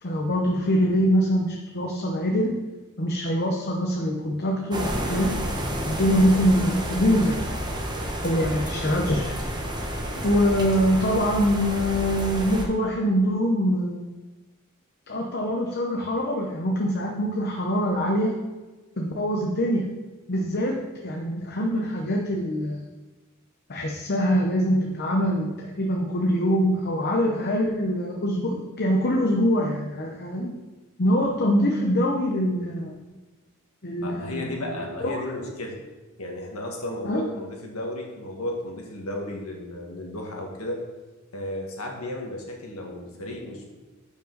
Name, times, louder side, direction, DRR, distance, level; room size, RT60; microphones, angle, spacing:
voice 1, 0.0-2.6 3.0-5.3 5.9-7.4 8.2-9.3 10.2-14.1 15.1-18.3 19.0-19.8 20.3-22.8 23.7-30.5 31.0-32.9 33.8-34.3 35.0-35.2 37.0-37.2, equal, 45° left, 0 dB, 0.8 m, -24 dB
sound 1, 4.7-12.6, equal, 20° right, 1.0 m, -30 dB
voice 2, 8.3-8.7 10.1-10.3 34.0-35.8 36.2-40.8 41.3-43.7, left 1 dB, 75° left, 0 dB, 1.7 m, -34 dB
10.0 x 5.3 x 3.9 m, 1.2 s
head